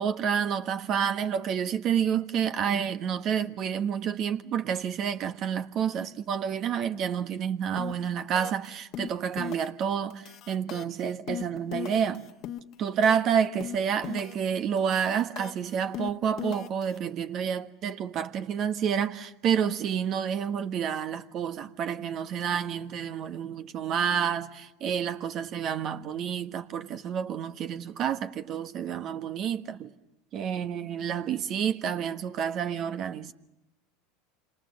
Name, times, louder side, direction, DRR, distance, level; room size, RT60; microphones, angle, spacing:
voice 1, 0.0-12.2 12.8-29.9 30.3-33.3, right 8 dB, 45° right, 1.4 m, -29 dB
sound 1, 7.8-8.1 8.4-8.7 8.9-9.8 10.1-13.3 13.6-14.5 14.8-17.0, left 11 dB, 50° left, 1.3 m, -38 dB
28.0 x 27.5 x 6.5 m
hypercardioid pair, 80°, 0 cm